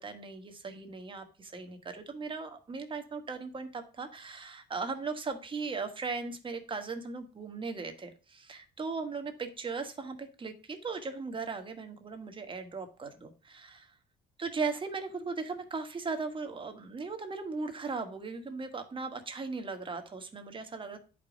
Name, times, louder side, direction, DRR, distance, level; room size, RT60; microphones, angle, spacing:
voice 1, 0.0-13.9 14.4-21.0, right 4 dB, 30° right, 6 dB, 1.6 m, -38 dB
10.0 x 5.3 x 5.2 m, 0.33 s
cardioid pair, 130°, 18 cm